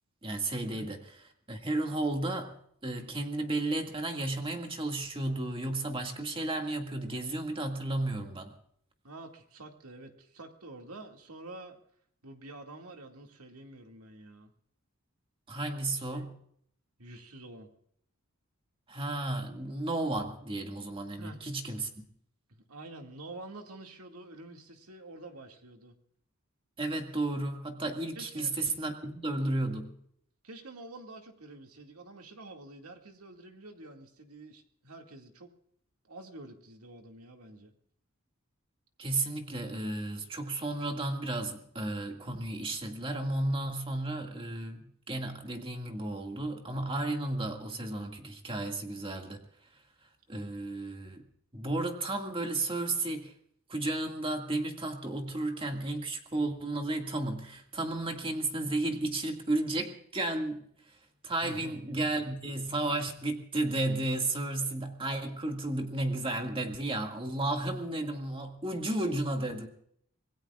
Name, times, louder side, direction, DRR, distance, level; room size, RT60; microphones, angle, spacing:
voice 1, 0.2-1.0 1.5-2.6 2.8-8.5 15.5-16.3 18.9-21.9 26.8-29.9 39.0-49.4 50.3-51.2 51.5-53.3 53.7-60.6 61.2-69.7, right 2 dB, 25° right, 3 dB, 2.1 m, -33 dB
voice 2, 9.0-11.8 12.2-14.5 16.1-16.3 17.0-17.7 21.2-21.4 22.5-25.9 28.2-28.6 30.4-35.5 36.1-37.7 61.4-62.1, right 2 dB, 80° right, 3 dB, 2.2 m, -48 dB
26.0 x 19.5 x 2.4 m, 0.66 s
head